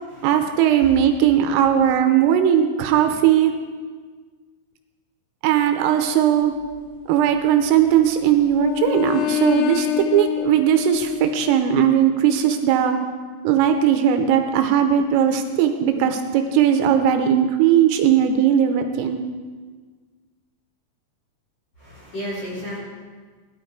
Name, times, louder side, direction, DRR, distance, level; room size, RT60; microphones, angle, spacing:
voice 1, 0.2-3.5 5.4-6.5 7.1-13.0 13.5-19.2, right 9 dB, 85° right, 6 dB, 3.4 m, -18 dB
sound 1, 6.4-8.1 8.5-11.6, left 11 dB, 90° left, 2.6 m, -27 dB
voice 2, 21.8-22.8, equal, 20° left, -6 dB, 5.0 m, -32 dB
17.5 x 12.0 x 4.7 m, 1.5 s
omnidirectional pair, 6.0 m